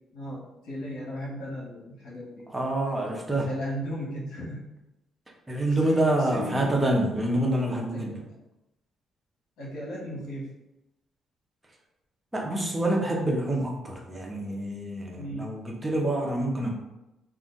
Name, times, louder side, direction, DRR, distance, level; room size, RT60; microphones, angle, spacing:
voice 1, 0.1-2.5 3.4-4.7 5.6-5.8 6.2-6.9 7.9-8.3 9.6-10.5 15.1-15.5, equal, 80° left, -4 dB, 1.1 m, -36 dB
voice 2, 2.5-3.5 5.5-8.2 12.3-16.7, right 1 dB, 15° right, -1 dB, 0.8 m, -27 dB
2.5 x 2.4 x 3.8 m, 0.94 s
cardioid pair, 90°, 0 cm